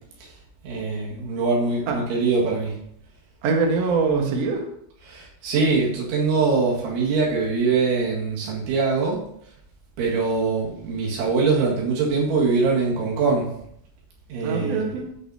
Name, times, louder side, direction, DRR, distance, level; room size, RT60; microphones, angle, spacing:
voice 1, 0.6-2.8 5.1-9.2 10.0-13.6 14.3-14.9, right 4 dB, 90° right, -5 dB, 4.5 m, -23 dB
voice 2, 3.4-4.7 14.4-15.1, right 4 dB, 70° right, 1 dB, 1.5 m, -23 dB
14.5 x 6.7 x 2.8 m, 0.71 s
omnidirectional pair, 5.3 m